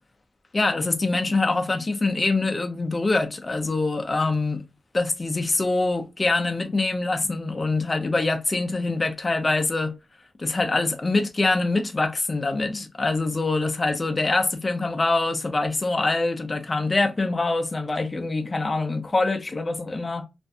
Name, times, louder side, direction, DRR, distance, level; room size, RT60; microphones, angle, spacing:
voice 1, 0.5-4.6 4.9-10.0 10.4-20.3, left 3 dB, 30° left, 0.5 m, -24 dB
2.4 x 2.1 x 2.6 m
wide cardioid pair, 95°, 0 cm